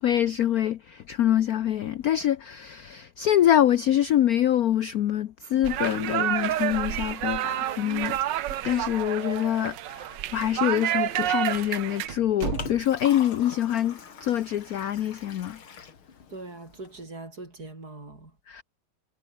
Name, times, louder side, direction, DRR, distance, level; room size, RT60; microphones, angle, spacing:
voice 1, 0.0-8.2 8.6-15.6 18.5-18.6, left 11 dB, 65° left, 0.9 m, -25 dB
sound 1, 5.6-12.1, right 12 dB, 65° right, 1.4 m, -29 dB
sound 2, 8.2-8.8 9.1-9.2 9.9-10.0 10.8-11.0 11.4-11.5 12.1-13.2, right 8 dB, 85° right, 2.5 m, -37 dB
Liquid, 12.0-17.0, left 6 dB, 85° left, 3.3 m, -43 dB
voice 2, 16.3-18.3, right 2 dB, 45° right, 5.7 m, -41 dB
omnidirectional pair, 2.2 m